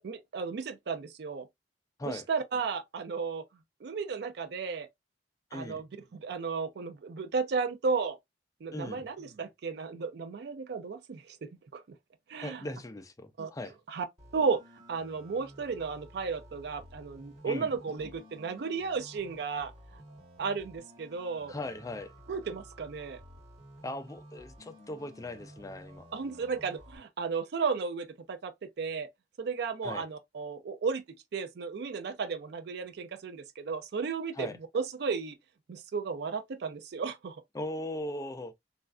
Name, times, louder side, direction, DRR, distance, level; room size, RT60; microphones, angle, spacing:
voice 1, 0.0-1.5 2.1-3.4 3.8-4.9 5.5-5.9 6.1-8.2 8.6-11.8 12.3-12.6 13.4-13.5 13.9-14.1 14.3-14.6 14.9-20.0 20.4-21.5 22.3-23.2 26.1-29.1 29.4-31.0 31.3-34.5 34.7-35.4 35.7-37.4, right 5 dB, 65° right, 0.4 m, -34 dB
voice 2, 5.5-5.8 8.7-9.1 12.4-13.7 17.4-17.7 21.5-22.1 23.8-26.1 29.8-30.0 34.3-34.6 37.5-38.5, left 1 dB, 20° left, 0.4 m, -39 dB
sound 1, 14.2-27.0, equal, 30° right, 2.1 m, -53 dB
3.2 x 2.4 x 2.3 m
head